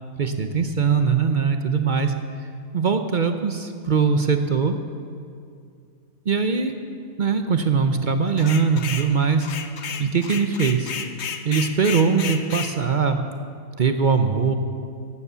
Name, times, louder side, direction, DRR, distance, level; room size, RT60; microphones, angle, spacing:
voice 1, 0.2-2.1 2.7-4.7 6.3-6.8 7.2-9.5 10.0-10.9 11.4-13.2 13.8-14.5, right 5 dB, 45° right, 7 dB, 0.6 m, -21 dB
sound 1, 8.4-9.1 9.4-12.7, left 7 dB, 55° left, 1.0 m, -32 dB
15.0 x 9.7 x 6.8 m, 2.4 s
omnidirectional pair, 1.5 m